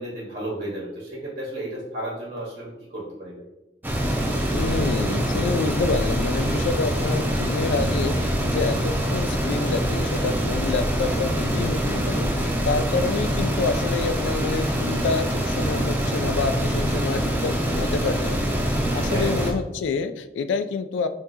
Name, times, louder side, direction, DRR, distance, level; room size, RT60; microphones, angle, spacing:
voice 1, 0.0-3.5 19.0-19.3, right 1 dB, 50° right, -5 dB, 1.2 m, -33 dB
sound 1, 3.8-19.5, equal, 10° right, 0.6 m, -24 dB
voice 2, 4.5-21.1, left 4 dB, 90° left, 11 dB, 0.3 m, -28 dB
5.9 x 2.8 x 2.7 m, 0.98 s
head